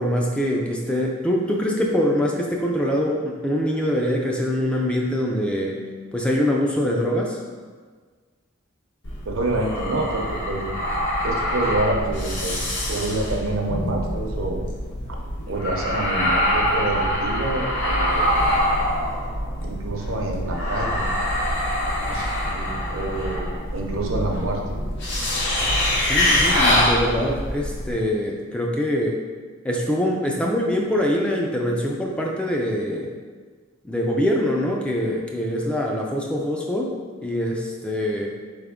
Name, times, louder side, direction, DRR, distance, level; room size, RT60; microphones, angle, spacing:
voice 1, 0.0-5.8 6.1-7.4 26.0-29.2 29.6-33.1 33.8-36.9 37.2-38.3, equal, 5° left, -1 dB, 0.3 m, -24 dB
sound 1, 9.0-27.9, left 1 dB, 60° left, 0.9 m, -24 dB
voice 2, 9.2-10.6 11.2-12.6 12.9-14.6 15.1-15.2 15.5-18.3 19.6-21.1 22.0-24.6, right 2 dB, 75° right, 1 dB, 0.7 m, -27 dB
4.3 x 3.4 x 3.6 m, 1.5 s
head